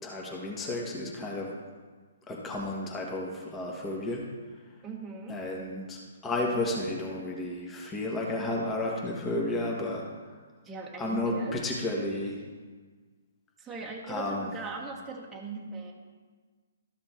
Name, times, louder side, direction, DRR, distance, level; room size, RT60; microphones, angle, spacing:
voice 1, 0.0-1.5 2.3-4.2 5.3-10.0 11.0-12.4 14.1-14.5, left 2 dB, 15° left, -2 dB, 1.6 m, -32 dB
voice 2, 4.8-5.4 10.6-11.6 13.6-15.9, right 4 dB, 10° right, -3 dB, 1.3 m, -39 dB
13.0 x 6.1 x 4.5 m, 1.5 s
hypercardioid pair, 135°, 0 cm